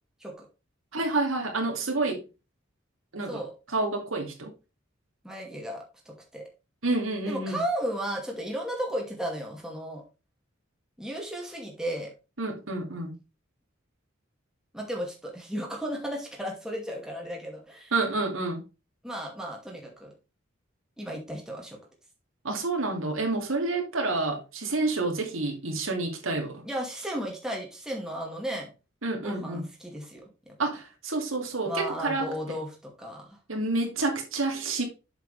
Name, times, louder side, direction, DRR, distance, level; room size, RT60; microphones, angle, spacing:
voice 1, 0.9-2.2 3.1-3.4 3.7-4.5 6.8-7.6 12.4-13.2 17.9-18.6 22.4-26.6 29.0-29.6 30.6-32.3 33.5-34.8, right 3 dB, 85° right, 2.6 m, -29 dB
voice 2, 5.2-6.5 7.3-10.0 11.0-12.1 14.7-17.9 19.0-20.1 21.0-21.8 26.6-28.7 29.2-30.5 31.7-33.4, equal, 5° right, 2.4 m, -34 dB
7.4 x 6.8 x 3.3 m
head